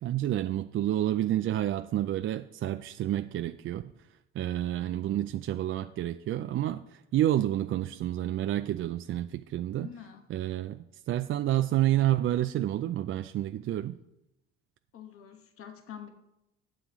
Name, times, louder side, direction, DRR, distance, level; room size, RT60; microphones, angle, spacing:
voice 1, 0.0-3.8 4.3-9.9 10.3-14.0, right 13 dB, 45° right, 0.4 m, -29 dB
voice 2, 9.7-10.2 14.9-16.1, left 9 dB, 50° left, 1.3 m, -46 dB
11.5 x 7.7 x 3.1 m
supercardioid pair, 75°, 30 cm